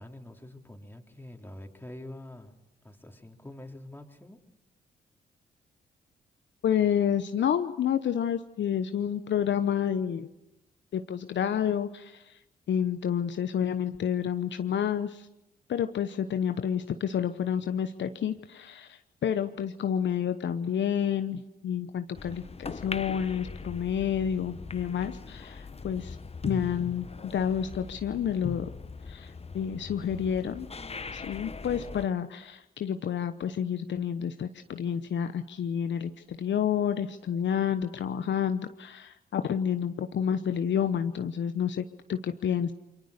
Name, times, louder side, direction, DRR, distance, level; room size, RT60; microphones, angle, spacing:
voice 1, 0.0-2.6 2.8-4.4, left 1 dB, 10° left, 2 dB, 3.8 m, -45 dB
voice 2, 6.6-10.3 10.9-12.4 12.7-15.3 15.7-26.2 26.4-28.7 29.1-30.7 31.1-42.7, left 8 dB, 60° left, 9 dB, 1.0 m, -29 dB
sound 1, 22.1-32.1, left 4 dB, 30° left, 1.0 m, -40 dB
29.0 x 23.5 x 6.7 m, 0.93 s
hypercardioid pair, 40°, 21 cm